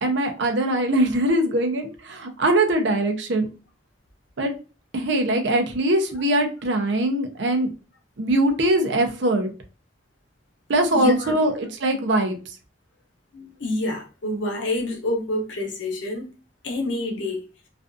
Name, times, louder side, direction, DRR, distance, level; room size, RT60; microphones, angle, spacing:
voice 1, 0.0-3.5 4.4-4.5 4.9-7.7 8.2-9.5 10.7-12.4, right 1 dB, 75° right, 0.5 m, -22 dB
voice 2, 10.9-11.3 13.3-16.3 16.6-17.4, left 1 dB, 85° left, 0.7 m, -27 dB
2.4 x 2.3 x 2.4 m
head